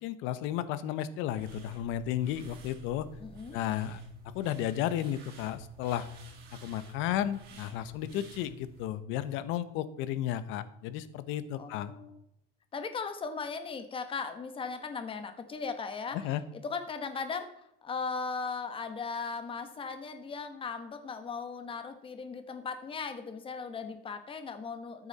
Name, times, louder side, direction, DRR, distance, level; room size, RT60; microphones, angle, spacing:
voice 1, 0.0-3.1 3.5-4.0 4.3-6.1 6.6-11.9 16.1-16.4, left 11 dB, 70° left, 14 dB, 1.1 m, -33 dB
sound 1, 1.4-8.9, right 3 dB, 50° right, 4.2 m, -51 dB
voice 2, 3.2-3.6 11.5-12.2 12.7-16.3 16.5-17.5 17.8-25.1, left 5 dB, 25° left, 9 dB, 1.6 m, -38 dB
13.5 x 9.2 x 4.3 m, 0.79 s
cardioid pair, 135°, 21 cm